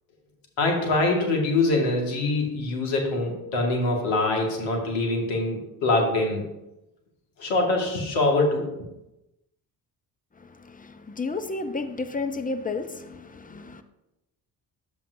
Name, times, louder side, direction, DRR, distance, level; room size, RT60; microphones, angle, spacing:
voice 1, 0.6-6.4 7.4-8.7, left 2 dB, 70° left, 1 dB, 2.1 m, -24 dB
voice 2, 10.4-13.8, left 3 dB, 15° left, 9 dB, 0.8 m, -32 dB
10.5 x 7.4 x 2.7 m, 0.93 s
hypercardioid pair, 50°, 48 cm